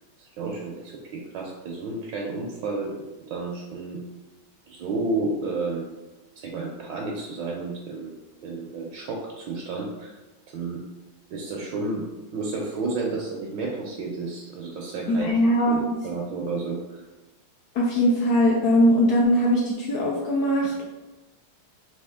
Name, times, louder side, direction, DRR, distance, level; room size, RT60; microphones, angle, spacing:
voice 1, 0.2-3.0 3.3-4.0 4.7-5.9 6.4-8.1 8.4-10.2 10.5-10.8 11.3-12.0 12.3-15.3 15.7-17.0, right 3 dB, 70° right, -1 dB, 1.2 m, -31 dB
voice 2, 15.1-15.8 17.7-20.8, equal, 75° left, -3 dB, 0.9 m, -21 dB
4.2 x 3.0 x 3.5 m, 1.1 s
omnidirectional pair, 2.3 m